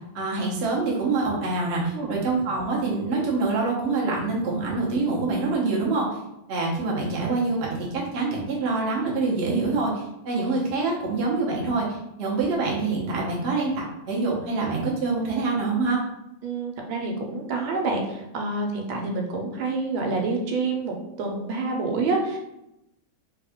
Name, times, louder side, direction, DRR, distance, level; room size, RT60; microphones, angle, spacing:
voice 1, 0.1-6.2 6.5-16.0, right 3 dB, 55° right, -3 dB, 0.7 m, -25 dB
voice 2, 16.4-22.4, right 3 dB, 80° right, 1 dB, 1.4 m, -27 dB
3.5 x 2.3 x 3.5 m, 0.86 s
omnidirectional pair, 2.2 m